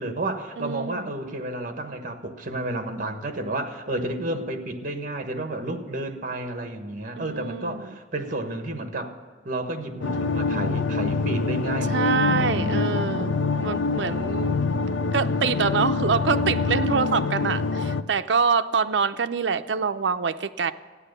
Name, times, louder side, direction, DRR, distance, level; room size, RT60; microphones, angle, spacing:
voice 1, 0.0-9.1 9.4-12.9, right 2 dB, 50° right, 6 dB, 1.3 m, -31 dB
voice 2, 0.6-1.1 7.2-8.0 11.9-14.6 15.1-20.7, right 5 dB, 75° right, 10 dB, 0.6 m, -25 dB
sound 1, 10.0-18.0, left 4 dB, 90° left, 0.5 m, -25 dB
13.0 x 9.8 x 6.7 m, 1.5 s
head